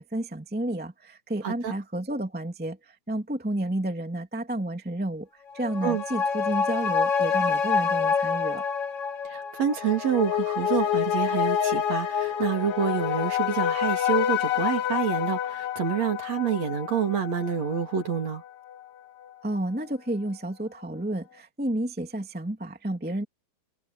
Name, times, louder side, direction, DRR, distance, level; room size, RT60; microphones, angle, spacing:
voice 1, 0.0-5.3 5.5-8.6 19.4-23.2, right 1 dB, 5° right, 1.0 m, -31 dB
sound 1, 5.5-18.4 18.7-18.8, left 7 dB, 90° left, 1.2 m, -27 dB
voice 2, 9.2-18.4, right 8 dB, 45° right, 3.4 m, -28 dB
omnidirectional pair, 4.6 m